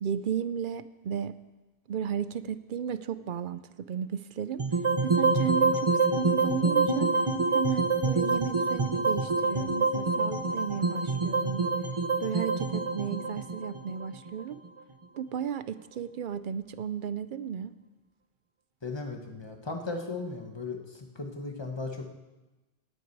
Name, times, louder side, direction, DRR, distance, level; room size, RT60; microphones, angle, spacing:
voice 1, 0.0-1.4 1.9-4.7 5.0-7.1 7.5-11.7 12.2-14.6 15.2-17.7, right 8 dB, 60° right, 14 dB, 0.6 m, -34 dB
sound 1, 4.6-14.8, right 3 dB, 30° right, 0.9 m, -26 dB
voice 2, 18.8-22.0, left 3 dB, 25° left, 3 dB, 1.4 m, -36 dB
18.5 x 8.3 x 4.7 m, 1.1 s
omnidirectional pair, 1.0 m